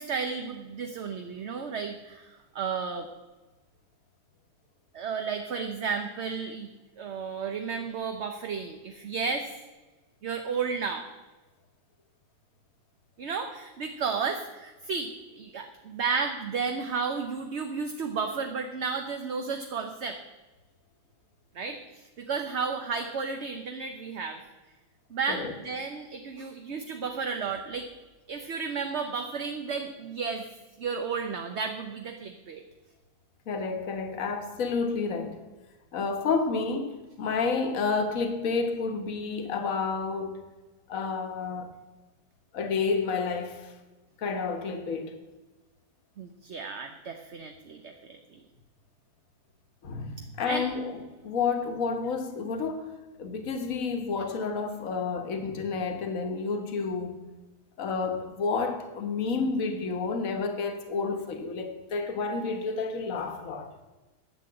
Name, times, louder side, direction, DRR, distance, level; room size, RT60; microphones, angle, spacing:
voice 1, 0.0-3.1 4.9-6.7 7.0-9.5 10.2-11.1 13.2-20.2 21.5-24.4 25.1-27.9 28.3-30.5 30.8-32.6 46.2-48.4 50.4-50.7, right 5 dB, 50° right, 1.0 m, -33 dB
voice 2, 33.5-35.4 35.9-40.4 40.9-41.7 42.5-43.7 44.2-45.1 49.8-51.0 51.2-52.9 53.2-57.2 57.8-63.7, left 4 dB, 55° left, 1.6 m, -30 dB
11.0 x 7.7 x 7.7 m
omnidirectional pair, 1.8 m